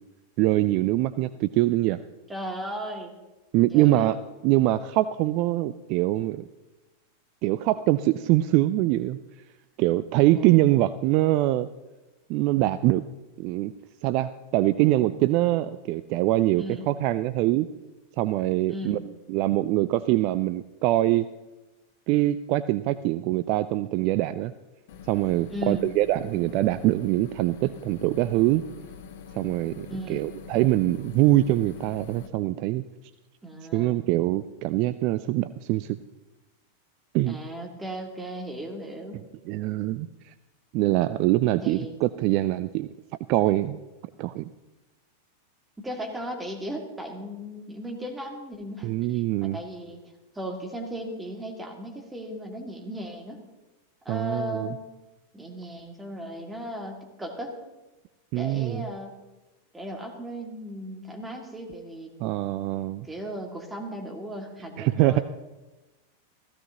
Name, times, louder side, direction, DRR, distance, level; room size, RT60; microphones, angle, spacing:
voice 1, 0.4-2.0 3.5-4.1 4.4-6.5 7.4-9.2 9.8-11.7 12.3-13.0 13.4-13.7 14.0-17.7 18.2-19.0 19.3-21.3 22.1-24.5 25.1-28.6 29.3-32.8 33.7-36.0 37.1-37.4 39.1-40.3 40.7-42.9 43.3-43.8 44.2-44.5 48.8-49.6 54.1-54.7 58.3-58.9 62.2-63.1 64.8-65.2, right 16 dB, 45° right, 14 dB, 0.3 m, -23 dB
voice 2, 2.3-3.1 3.7-4.2 10.3-10.5 16.6-16.9 18.7-19.1 25.5-25.8 29.9-30.3 33.4-34.0 37.2-39.2 41.6-42.0 45.8-49.2 49.5-50.0 50.3-53.4 54.0-54.8 55.3-57.6 58.3-59.2 59.7-62.1 63.0-65.2, equal, 10° right, 1 dB, 2.2 m, -36 dB
sound 1, 24.9-32.3, left 7 dB, 55° left, 1.1 m, -44 dB
15.5 x 15.0 x 2.9 m, 1.1 s
figure-of-eight pair, 90°, 0 cm